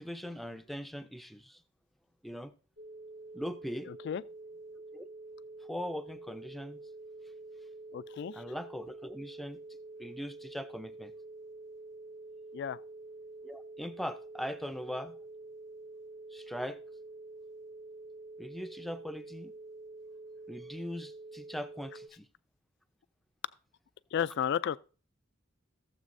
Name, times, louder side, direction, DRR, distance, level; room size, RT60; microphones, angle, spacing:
voice 1, 0.0-1.6 2.2-2.5 3.3-3.9 4.9-5.1 5.7-6.8 8.3-9.6 10.0-11.1 13.4-15.2 16.3-16.8 18.4-19.5 20.5-22.3, equal, ahead, 0.5 m, -40 dB
sound 1, 2.8-22.1, right 2 dB, 85° right, 2.9 m, -48 dB
voice 2, 3.9-4.2 7.9-8.4 12.5-12.8 24.1-24.8, left 8 dB, 60° left, 0.3 m, -33 dB
15.5 x 7.3 x 2.6 m
head